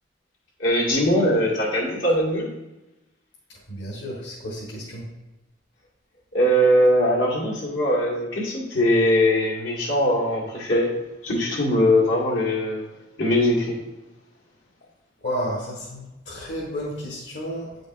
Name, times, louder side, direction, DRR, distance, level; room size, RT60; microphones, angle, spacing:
voice 1, 0.6-2.5 6.3-10.9 11.2-12.8 13.2-13.8, equal, 85° left, -5 dB, 2.1 m, -21 dB
voice 2, 3.7-5.1 15.2-17.8, equal, 65° left, -6 dB, 1.5 m, -32 dB
9.1 x 5.2 x 2.5 m, 1.0 s
head